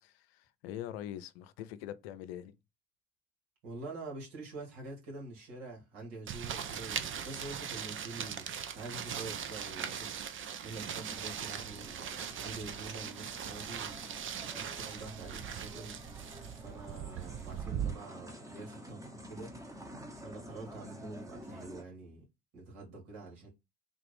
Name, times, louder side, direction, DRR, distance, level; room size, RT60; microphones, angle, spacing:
voice 1, 0.0-2.6, left 11 dB, 85° left, 0.5 m, -43 dB
voice 2, 3.6-8.5 8.7-12.0 12.4-14.1 14.5-16.0 16.5-19.5 20.1-22.2 22.5-23.5, right 3 dB, 75° right, 2.1 m, -46 dB
sound 1, 6.3-17.9, right 8 dB, 40° right, 0.6 m, -40 dB
sound 2, 10.9-21.8, equal, 10° right, 0.9 m, -50 dB
3.6 x 2.5 x 3.3 m
hypercardioid pair, 60°, 31 cm